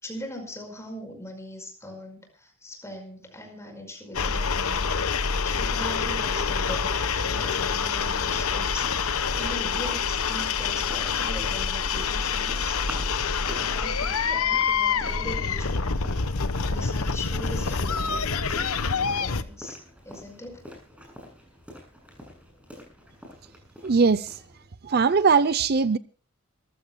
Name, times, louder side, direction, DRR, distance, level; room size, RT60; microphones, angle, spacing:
voice 1, 0.0-12.8 13.5-15.9 16.7-18.4 18.9-19.8 20.0-20.6, equal, 15° left, 5.2 m, -40 dB
sound 1, 4.1-19.4, left 5 dB, 80° left, 1.1 m, -26 dB
sound 2, 6.1-24.7, equal, 5° right, 7.6 m, -46 dB
voice 2, 23.8-24.4 24.8-26.0, right 5 dB, 45° right, 0.6 m, -20 dB
26.0 x 15.0 x 2.3 m
head